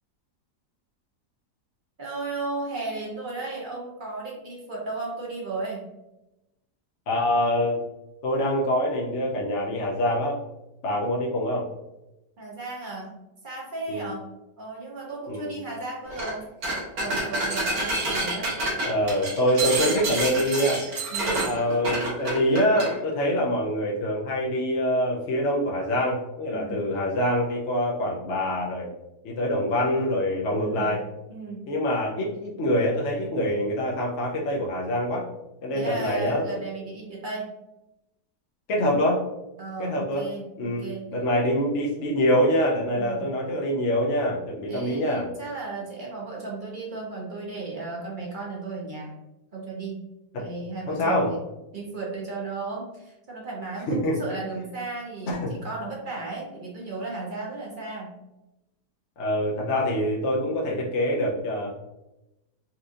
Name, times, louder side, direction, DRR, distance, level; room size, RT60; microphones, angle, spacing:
voice 1, 2.0-5.8 12.4-13.1 13.4-14.3 14.6-16.4 17.0-18.5 21.1-21.4 26.5-26.8 30.6-30.9 31.3-31.6 35.7-37.5 39.6-41.0 42.9-43.2 44.7-49.1 49.5-50.0 50.3-51.4 51.7-58.1, right 3 dB, 45° right, -4 dB, 0.7 m, -35 dB
voice 2, 7.1-7.8 8.2-10.4 10.8-11.7 13.9-14.1 15.3-15.5 18.8-20.8 21.4-28.9 29.2-31.0 31.7-35.3 35.6-36.6 38.7-39.2 39.8-40.3 40.6-45.3 50.3-50.5 50.9-51.3 53.9-54.4 55.3-55.6 59.2-61.7, equal, 65° left, -2 dB, 0.7 m, -25 dB
sound 1, 16.1-16.3 16.6-22.9, right 2 dB, 65° right, 1.6 m, -28 dB
4.1 x 2.5 x 2.5 m, 0.95 s
omnidirectional pair, 1.7 m